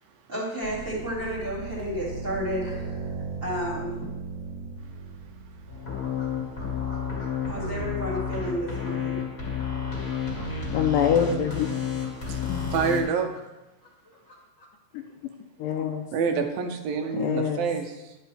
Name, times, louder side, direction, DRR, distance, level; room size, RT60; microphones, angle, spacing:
voice 1, 0.3-4.1 7.5-9.2, equal, 20° right, -6 dB, 1.7 m, -32 dB
sound 1, 0.6-7.1, right 4 dB, 50° right, 1.7 m, -38 dB
sound 2, 5.7-13.0, left 6 dB, 25° left, 1.3 m, -31 dB
sound 3, 6.0-8.5 8.8-8.9 9.6-11.5 11.8-13.5 13.8-14.7, equal, 45° left, 1.6 m, -51 dB
voice 2, 10.7-11.7 12.4-12.7 14.9-15.3 15.6-16.0 17.1-17.6, left 8 dB, 80° left, 4 dB, 2.1 m, -25 dB
voice 3, 12.7-13.3 16.1-18.2, right 6 dB, 85° right, 5 dB, 2.4 m, -28 dB
11.0 x 7.7 x 3.3 m, 0.99 s
omnidirectional pair, 4.3 m